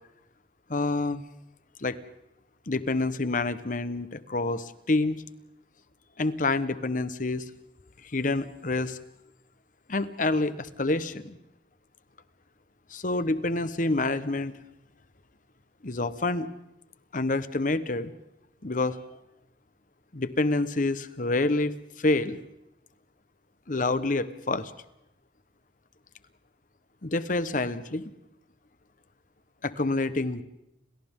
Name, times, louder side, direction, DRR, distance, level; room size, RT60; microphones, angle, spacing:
voice 1, 0.7-1.2 1.8-2.0 2.7-5.2 6.2-7.4 8.1-9.0 9.9-11.4 12.9-14.5 15.8-16.5 17.1-18.1 18.6-19.0 20.1-22.4 23.7-24.7 27.0-28.1 29.6-30.4, left 2 dB, 50° left, 13 dB, 1.2 m, -27 dB
30.0 x 27.0 x 3.7 m, 0.87 s
head